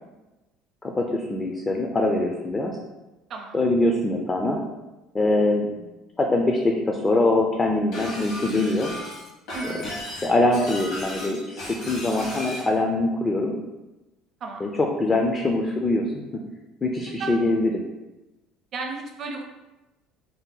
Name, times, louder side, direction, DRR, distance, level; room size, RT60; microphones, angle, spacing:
voice 1, 0.8-2.8 3.5-4.6 5.1-5.7 6.2-8.9 9.6-9.8 10.2-13.5 14.6-16.2 16.8-17.8, left 2 dB, 20° left, 1 dB, 0.3 m, -23 dB
voice 2, 3.3-3.6 9.5-9.8 14.4-14.7 17.2-17.3 18.7-19.4, right 4 dB, 45° right, 3 dB, 0.5 m, -33 dB
Shatter, 7.9-12.7, left 1 dB, 65° left, 1.0 m, -36 dB
2.7 x 2.0 x 3.8 m, 1.0 s
cardioid pair, 125°, 0 cm